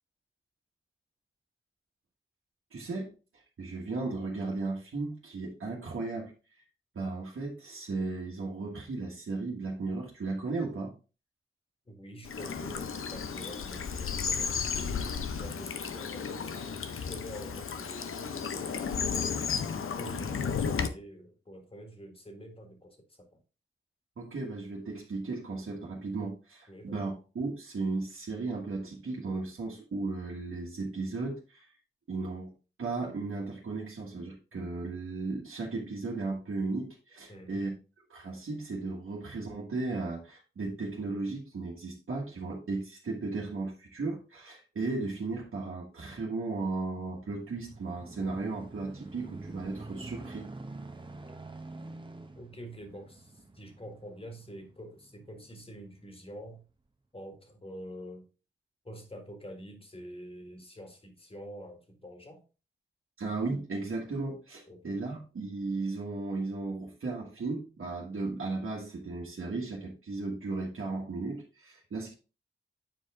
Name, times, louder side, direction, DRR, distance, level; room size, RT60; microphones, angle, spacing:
voice 1, 2.7-3.1 3.6-6.3 7.0-10.9 24.2-31.7 32.1-32.5 32.8-37.8 38.1-50.5 63.2-72.1, right 3 dB, 85° right, -4 dB, 1.8 m, -35 dB
voice 2, 11.9-18.2 18.5-19.0 19.7-23.4 26.7-27.2 37.3-37.7 52.4-56.6 57.1-58.3 58.8-62.4 64.7-65.0, equal, 25° left, 5 dB, 1.8 m, -47 dB
Bird vocalization bird call bird song / Stream, 12.3-20.9, left 6 dB, 85° left, 0.7 m, -33 dB
sound 1, 47.0-55.8 56.4-56.5, right 2 dB, 25° right, 0.9 m, -46 dB
9.0 x 4.8 x 3.6 m, 0.32 s
wide cardioid pair, 110°, 21 cm